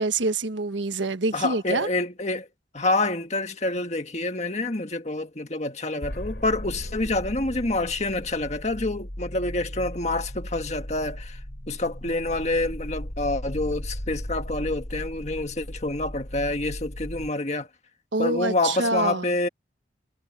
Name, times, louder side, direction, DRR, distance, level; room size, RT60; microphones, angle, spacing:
voice 1, 0.0-1.9 18.1-19.2, right 3 dB, 85° right, 1.4 m, -26 dB
voice 2, 1.3-2.5 2.7-11.4 11.7-17.7 18.2-19.5, left 2 dB, 40° left, 1.7 m, -27 dB
sound 1, 6.0-17.3, equal, 60° left, 4.0 m, -36 dB
head